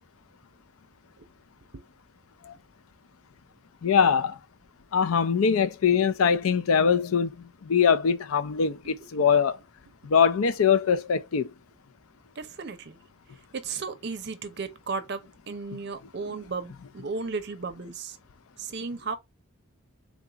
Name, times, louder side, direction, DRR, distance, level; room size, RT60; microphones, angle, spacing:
voice 1, 3.8-4.4 4.9-9.6 10.0-11.5, left 6 dB, 75° left, 0.4 m, -22 dB
voice 2, 12.4-13.0 13.5-18.2 18.6-19.2, right 4 dB, 50° right, 0.6 m, -35 dB
3.6 x 2.3 x 3.8 m
head